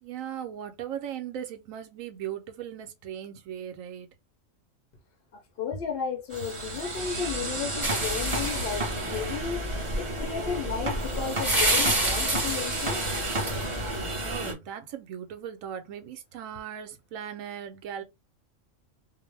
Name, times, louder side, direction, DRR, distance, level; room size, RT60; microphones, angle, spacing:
voice 1, 0.0-4.1 14.2-18.0, right 9 dB, 80° right, 1.0 m, -38 dB
voice 2, 5.3-9.7 10.0-13.0, left 7 dB, 60° left, 0.6 m, -34 dB
sound 1, 6.3-14.5, right 1 dB, 30° right, 0.6 m, -32 dB
sound 2, 7.8-13.9, right 1 dB, ahead, 0.8 m, -30 dB
2.4 x 2.0 x 3.2 m
omnidirectional pair, 1.4 m